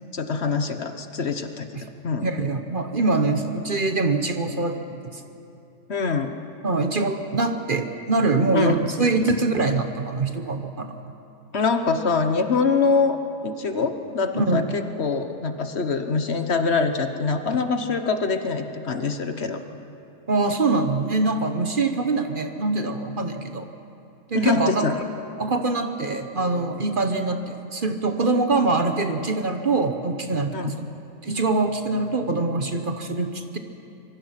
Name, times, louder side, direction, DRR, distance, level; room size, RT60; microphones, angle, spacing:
voice 1, 0.1-2.4 5.9-6.3 8.5-8.9 11.5-13.2 13.4-19.6 24.3-25.0 30.5-30.8, left 4 dB, 55° left, 7 dB, 1.4 m, -24 dB
voice 2, 2.2-5.2 6.6-11.0 14.3-14.7 20.3-23.7 24.3-24.9 25.4-30.9 31.2-33.6, right 3 dB, 40° right, 6 dB, 1.2 m, -24 dB
25.5 x 23.0 x 5.9 m, 2.7 s
omnidirectional pair, 1.4 m